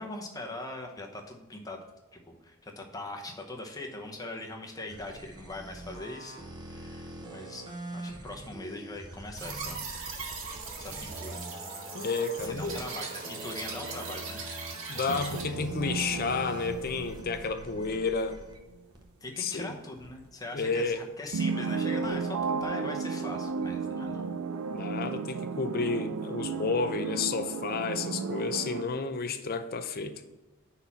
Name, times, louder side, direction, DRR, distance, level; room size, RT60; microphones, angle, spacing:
voice 1, 0.0-1.9 2.3-6.4 6.6-7.7 7.9-9.8 10.8-11.4 12.5-14.4 19.2-24.3, left 2 dB, 15° left, 0.8 m, -41 dB
sound 1, 4.9-20.5 20.8-23.1 23.4-24.0, right 1 dB, 20° right, 0.8 m, -45 dB
sound 2, 9.4-15.4, right 4 dB, 65° right, 1.9 m, -40 dB
voice 2, 11.9-12.8 14.9-18.4 19.4-19.8 20.5-21.0 24.7-30.2, left 4 dB, 45° left, 0.5 m, -31 dB
sound 3, 15.1-18.3 18.7-18.8 21.3-28.8, right 5 dB, 90° right, 0.4 m, -34 dB
5.3 x 4.2 x 5.8 m
head